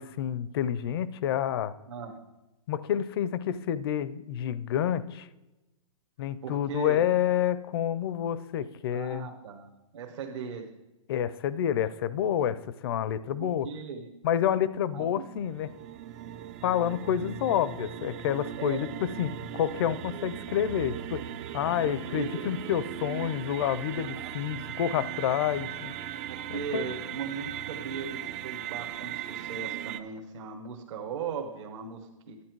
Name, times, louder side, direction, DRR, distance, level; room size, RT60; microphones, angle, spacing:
voice 1, 0.0-1.7 2.7-5.3 6.2-9.3 11.1-13.7 14.2-15.7 16.6-21.2 21.5-25.9 26.5-26.9, left 10 dB, 45° left, 17 dB, 0.5 m, -29 dB
voice 2, 1.9-2.2 6.4-7.1 8.9-10.7 13.4-14.1 14.9-15.2 18.6-18.8 21.8-22.5 23.9-24.3 26.3-32.4, right 6 dB, 60° right, 1 dB, 1.2 m, -38 dB
sound 1, 15.0-30.0, right 11 dB, 25° right, 0.4 m, -38 dB
11.5 x 9.3 x 4.6 m, 1.0 s
hypercardioid pair, 160°, 17 cm